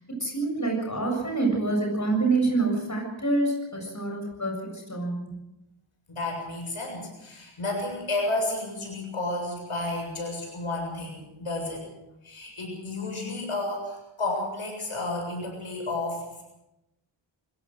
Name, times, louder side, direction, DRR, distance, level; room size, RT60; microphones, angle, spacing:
voice 1, 0.1-5.4, right 3 dB, 35° left, 1 dB, 7.6 m, -27 dB
voice 2, 6.1-11.8 12.2-16.4, left 2 dB, 90° left, 1 dB, 7.3 m, -31 dB
25.0 x 16.5 x 6.6 m, 0.90 s
wide cardioid pair, 80°, 49 cm